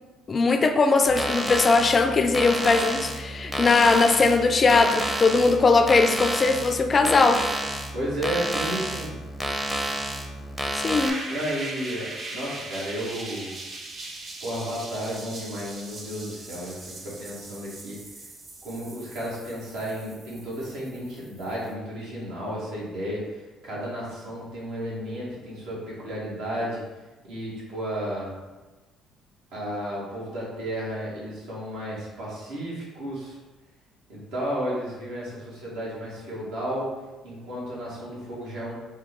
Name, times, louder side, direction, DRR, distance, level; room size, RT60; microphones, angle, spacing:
voice 1, 0.3-7.4 10.8-11.2, left 4 dB, 35° left, 7 dB, 0.3 m, -20 dB
sound 1, 1.1-11.1, right 1 dB, 10° right, 0.6 m, -30 dB
voice 2, 7.9-9.2 11.3-13.5 14.4-18.0 18.6-26.8 27.2-28.3 29.5-33.4 34.1-36.9 37.2-38.7, equal, 75° right, -6 dB, 1.4 m, -33 dB
sound 2, 11.0-21.7, right 2 dB, 45° right, 0.6 m, -40 dB
4.0 x 2.3 x 3.6 m, 1.2 s
supercardioid pair, 70°, 0 cm